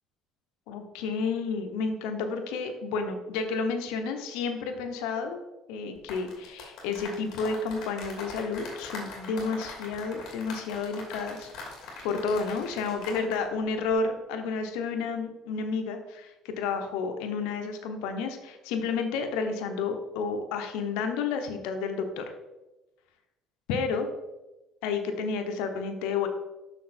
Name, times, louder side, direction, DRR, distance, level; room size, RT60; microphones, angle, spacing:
voice 1, 0.7-5.4 5.7-11.5 12.0-22.2 23.7-24.1 24.8-26.3, left 4 dB, 85° left, 6 dB, 1.0 m, -31 dB
sound 1, 6.0-13.4 13.7-13.9, left 3 dB, 65° left, 2.7 m, -42 dB
6.4 x 6.4 x 4.4 m, 1.0 s
cardioid pair, 110°, 0 cm